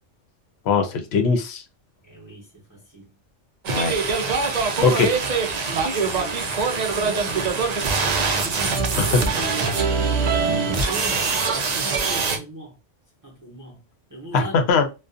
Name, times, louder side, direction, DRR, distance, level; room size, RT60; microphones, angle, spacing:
voice 1, 0.7-1.6 3.7-3.9 4.8-5.1 9.0-9.2 14.3-14.9, left 5 dB, 65° left, 0.8 m, -20 dB
voice 2, 2.0-3.1 4.7-5.1 5.6-6.6 6.9-8.2 8.4-9.7 10.2-11.3 11.7-12.8 13.2-13.8 14.1-14.5, right 2 dB, 20° right, 0.8 m, -38 dB
sound 1, 3.6-12.4, right 4 dB, 65° right, 0.4 m, -23 dB
2.4 x 2.3 x 2.4 m
omnidirectional pair, 1.2 m